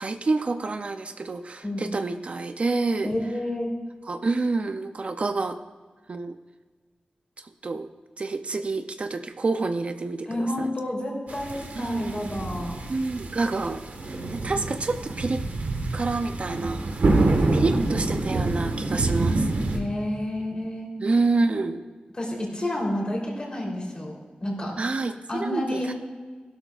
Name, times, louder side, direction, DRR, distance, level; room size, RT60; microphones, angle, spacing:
voice 1, 0.0-3.1 4.0-5.6 6.1-6.3 7.6-7.9 8.2-10.7 11.8-12.3 12.9-15.4 15.9-16.8 17.5-19.5 21.0-21.8 24.8-25.9, right 3 dB, 45° right, 8 dB, 0.5 m, -28 dB
voice 2, 3.0-3.7 10.2-12.8 17.1-17.8 19.7-20.9 22.2-24.1 24.4-24.7 25.3-25.9, left 1 dB, 35° left, -2 dB, 3.4 m, -30 dB
sound 1, 11.3-19.8, right 2 dB, 65° right, 1.4 m, -27 dB
16.5 x 12.0 x 2.4 m, 1.5 s
wide cardioid pair, 135°, 3 cm